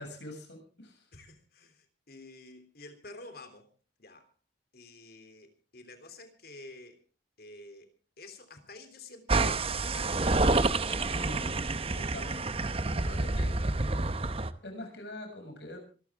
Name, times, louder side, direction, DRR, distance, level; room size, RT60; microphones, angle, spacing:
voice 1, 0.0-1.1 11.1-11.6 11.9-13.5 14.6-15.8, left 1 dB, 75° left, 4 dB, 6.9 m, -44 dB
voice 2, 1.1-3.7 4.0-4.3 4.7-7.0 7.4-7.9 8.2-10.5 10.8-11.2, left 2 dB, 55° left, 8 dB, 3.3 m, -50 dB
sound 1, 9.3-14.5, right 3 dB, 35° right, 0.9 m, -28 dB
25.5 x 13.5 x 3.6 m, 0.37 s
head